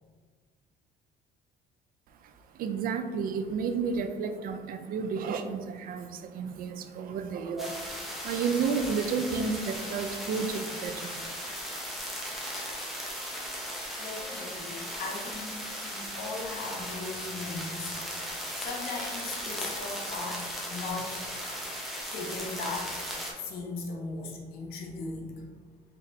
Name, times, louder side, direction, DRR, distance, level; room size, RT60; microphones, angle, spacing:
voice 1, 2.6-7.9 8.2-11.3, right 5 dB, 60° right, 8 dB, 0.4 m, -31 dB
sound 1, 7.6-23.3, equal, ahead, 0.8 m, -37 dB
voice 2, 14.0-21.2 22.1-22.9 23.4-25.4, left 3 dB, 65° left, 0 dB, 0.9 m, -38 dB
4.0 x 3.3 x 2.7 m, 1.5 s
cardioid pair, 110°, 17 cm